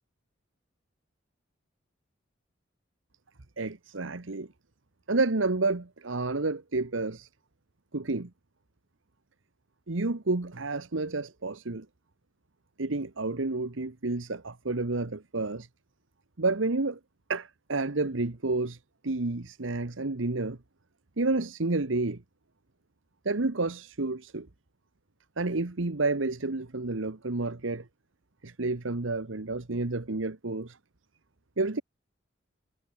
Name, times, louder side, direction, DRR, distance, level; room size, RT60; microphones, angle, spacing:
voice 1, 3.6-4.5 5.1-7.3 7.9-8.3 9.9-11.9 12.8-15.7 16.4-17.0 17.3-20.6 21.2-22.2 23.2-24.5 25.4-27.9 28.4-30.8 31.6-31.8, right 3 dB, 85° right, 1.2 m, -30 dB
head